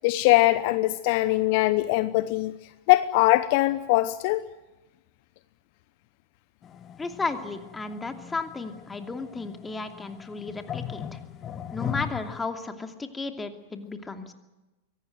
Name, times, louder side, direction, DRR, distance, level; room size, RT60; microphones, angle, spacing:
voice 1, 0.0-2.6 2.9-4.4, left 18 dB, 50° left, 15 dB, 0.9 m, -22 dB
sound 1, 6.6-12.4, left 9 dB, 30° left, 1.7 m, -39 dB
voice 2, 7.0-11.2 11.7-14.3, left 3 dB, 15° left, 7 dB, 2.6 m, -34 dB
23.5 x 18.0 x 9.3 m, 1.1 s
figure-of-eight pair, 95°, 0 cm